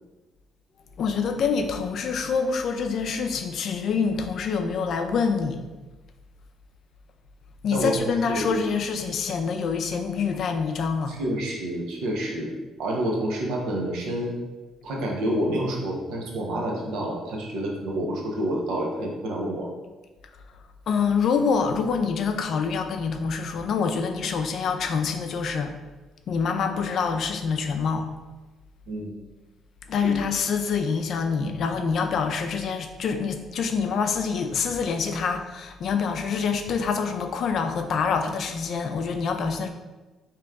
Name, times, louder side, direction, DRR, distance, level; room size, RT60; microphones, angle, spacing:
voice 1, 1.0-5.6 7.6-11.2 20.9-25.8 26.3-28.1 29.9-39.7, left 5 dB, 55° left, 6 dB, 0.4 m, -26 dB
voice 2, 7.7-8.6 11.1-12.5 12.8-14.4 14.8-19.7 28.9-29.1 30.0-30.1, right 1 dB, 85° right, -1 dB, 0.8 m, -28 dB
3.5 x 2.9 x 3.5 m, 1.2 s
cardioid pair, 135°, 0 cm